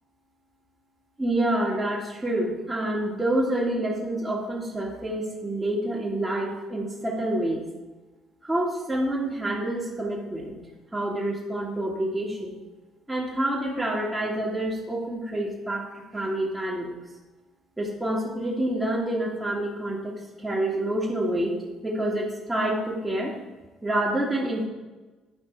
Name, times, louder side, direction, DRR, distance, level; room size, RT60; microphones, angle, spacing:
voice 1, 1.2-7.6 8.4-10.6 10.9-12.6 13.1-16.9 17.8-21.6 21.8-23.3 23.8-24.6, right 1 dB, 10° right, -5 dB, 2.1 m, -27 dB
10.0 x 5.8 x 4.7 m, 1.2 s
hypercardioid pair, 50°, 0 cm